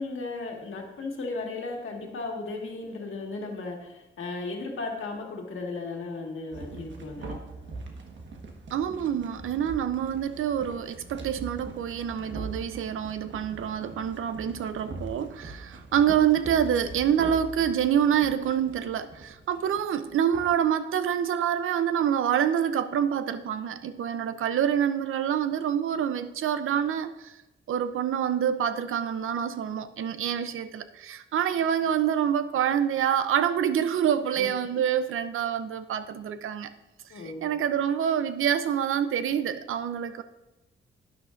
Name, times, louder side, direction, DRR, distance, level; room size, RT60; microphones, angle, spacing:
voice 1, 0.0-7.4 34.3-34.7 37.1-37.5, left 3 dB, 75° left, 1 dB, 1.8 m, -35 dB
sound 1, 6.5-20.5, right 3 dB, 65° right, 1.4 m, -42 dB
voice 2, 8.7-27.4 27.7-36.7 37.1-40.2, right 9 dB, 80° right, 11 dB, 0.6 m, -26 dB
12.0 x 9.6 x 2.5 m, 0.97 s
cardioid pair, 95°, 21 cm